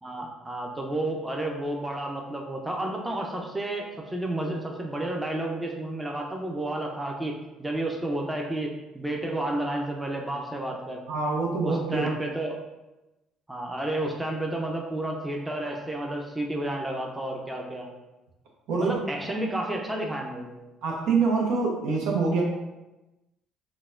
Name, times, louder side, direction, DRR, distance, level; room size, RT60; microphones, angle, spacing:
voice 1, 0.0-11.0 11.6-12.6 13.5-17.9 18.8-20.6, right 1 dB, 15° right, 1 dB, 0.6 m, -31 dB
voice 2, 11.1-12.0 18.7-18.9 20.8-22.4, right 4 dB, 75° right, -1 dB, 0.6 m, -25 dB
3.8 x 2.2 x 2.5 m, 1.0 s
hypercardioid pair, 60°, 0 cm